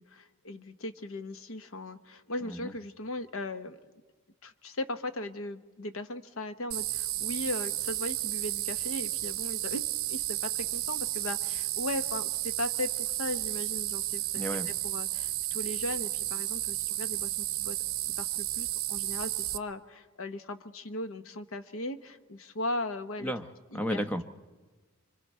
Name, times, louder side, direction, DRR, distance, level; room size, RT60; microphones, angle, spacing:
voice 1, 0.0-3.9 4.4-9.8 10.1-23.3 23.7-24.0, left 2 dB, 70° left, 10 dB, 1.0 m, -38 dB
sound 1, 6.7-19.6, right 16 dB, 70° right, 0.7 m, -32 dB
voice 2, 23.7-24.2, equal, 5° left, 8 dB, 0.8 m, -32 dB
27.0 x 25.0 x 4.3 m, 1.3 s
head